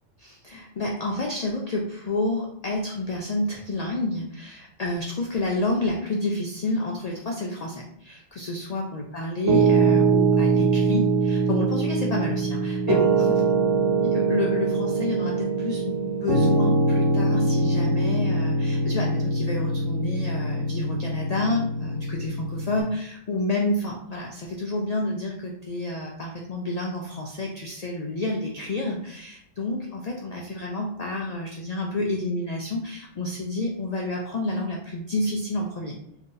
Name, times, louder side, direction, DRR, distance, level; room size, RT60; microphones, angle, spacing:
voice 1, 0.2-13.4 14.3-36.0, left 2 dB, 80° left, 0 dB, 0.3 m, -29 dB
Piano, 9.5-22.8, right 3 dB, 85° right, 1.0 m, -23 dB
2.7 x 2.5 x 3.7 m, 0.72 s
omnidirectional pair, 1.3 m